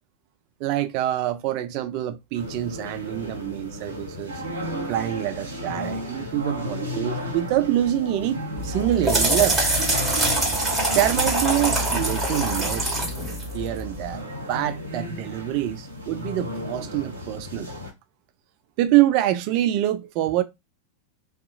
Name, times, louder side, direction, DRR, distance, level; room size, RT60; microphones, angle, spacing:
voice 1, 0.6-4.4 4.9-9.6 10.9-13.1 13.5-17.7 18.8-20.4, right 13 dB, 45° right, 0.4 m, -25 dB
sound 1, 2.3-17.9, left 1 dB, 75° right, 0.9 m, -34 dB
sound 2, 8.6-14.2, right 1 dB, 10° right, 1.4 m, -24 dB
2.4 x 2.2 x 2.7 m
figure-of-eight pair, 90°, 0 cm